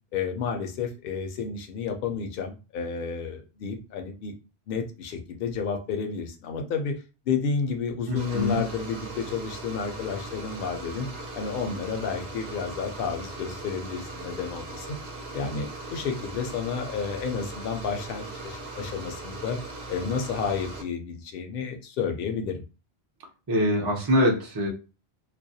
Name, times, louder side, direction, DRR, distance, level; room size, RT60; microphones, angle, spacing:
voice 1, 0.1-4.3 4.7-11.1 11.3-15.0 15.3-19.6 19.9-22.6, left 5 dB, 60° left, 4 dB, 0.7 m, -31 dB
voice 2, 8.1-8.6 23.5-24.7, left 1 dB, 35° right, 0 dB, 0.4 m, -24 dB
sound 1, 8.2-20.8, right 2 dB, 65° right, 0.8 m, -39 dB
2.3 x 2.1 x 2.6 m, 0.31 s
omnidirectional pair, 1.1 m